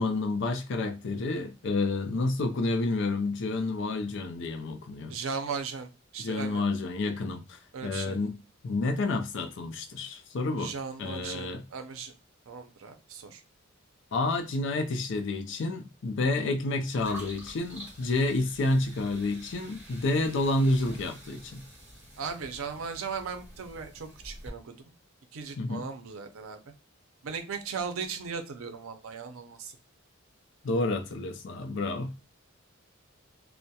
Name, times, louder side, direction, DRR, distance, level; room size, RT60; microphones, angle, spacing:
voice 1, 0.0-5.2 6.2-8.4 8.6-10.7 11.0-11.6 14.1-21.6 25.6-25.8 30.6-32.1, left 2 dB, 60° left, 0.4 m, -29 dB
voice 2, 5.1-6.6 7.7-8.2 10.6-12.1 12.5-13.4 22.2-24.9 25.3-26.6 27.2-29.8, right 5 dB, 85° right, 0.5 m, -37 dB
sound 1, 17.0-24.5, equal, 10° right, 1.0 m, -48 dB
2.2 x 2.0 x 2.7 m
head